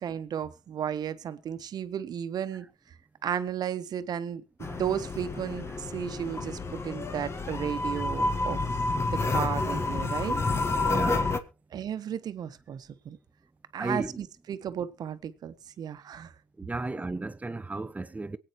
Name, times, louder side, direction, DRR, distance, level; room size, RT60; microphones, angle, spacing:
voice 1, 0.0-2.7 3.2-8.6 9.1-10.4 11.7-13.2 13.7-16.3, right 9 dB, 55° right, 1.2 m, -34 dB
sound 1, 4.6-11.4, left 3 dB, 35° left, 1.5 m, -29 dB
voice 2, 10.7-11.3 13.8-14.2 16.6-18.4, right 2 dB, 20° right, 0.8 m, -34 dB
23.5 x 8.8 x 3.1 m
hypercardioid pair, 60°, 8 cm